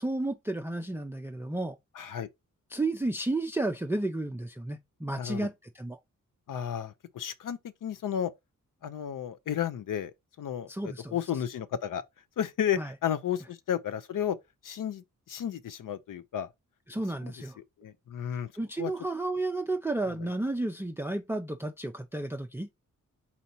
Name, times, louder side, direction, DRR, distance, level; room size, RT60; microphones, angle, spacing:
voice 1, 0.0-1.8 2.7-6.0 10.7-11.1 12.8-12.9 16.9-17.6 18.6-22.7, right 2 dB, 5° right, 0.4 m, -32 dB
voice 2, 1.9-2.3 5.2-5.5 6.5-8.3 8.8-10.1 10.4-12.0 12.4-14.4 14.6-16.5 17.2-17.3 17.8-18.5 18.8-18.9, left 9 dB, 75° left, 0.6 m, -33 dB
4.2 x 2.7 x 4.3 m
wide cardioid pair, 90°, 33 cm